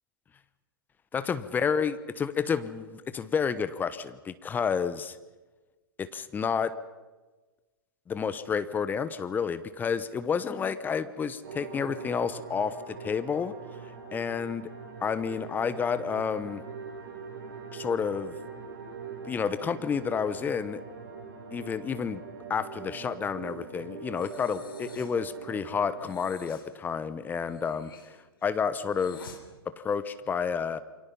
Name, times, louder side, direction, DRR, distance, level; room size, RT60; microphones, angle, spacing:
voice 1, 1.1-5.2 6.0-6.7 8.1-13.5 13.8-14.7 15.0-16.6 17.7-18.3 19.2-20.8 21.5-22.2 22.5-27.9 28.4-29.3 29.8-30.8, left 6 dB, 15° left, 13 dB, 1.0 m, -30 dB
sound 1, 11.4-26.1, right 5 dB, 50° right, 7.4 m, -43 dB
Breathing, 24.2-25.2 26.0-26.7 27.4-29.4, left 5 dB, 65° left, 3.5 m, -49 dB
28.5 x 24.0 x 5.6 m, 1.2 s
figure-of-eight pair, 115°, 13 cm